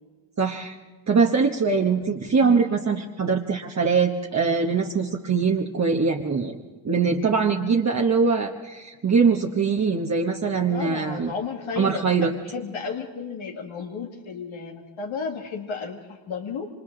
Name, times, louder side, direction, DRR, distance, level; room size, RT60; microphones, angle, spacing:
voice 1, 0.4-0.8 1.1-6.6 6.8-11.3 11.8-12.3, right 5 dB, 35° right, 1 dB, 1.2 m, -22 dB
voice 2, 2.4-2.7 10.7-16.7, left 5 dB, 85° left, 0 dB, 2.1 m, -33 dB
28.0 x 26.0 x 3.9 m, 1.4 s
wide cardioid pair, 130°, 46 cm